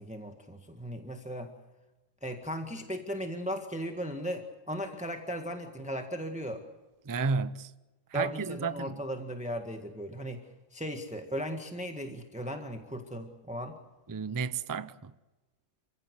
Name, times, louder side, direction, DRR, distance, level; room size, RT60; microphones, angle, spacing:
voice 1, 0.0-1.5 2.2-6.6 8.1-13.7, equal, 5° right, 1.7 m, -37 dB
voice 2, 7.1-7.7 8.1-9.0 14.1-15.1, right 4 dB, 20° right, 0.5 m, -32 dB
28.5 x 16.0 x 8.1 m
omnidirectional pair, 1.3 m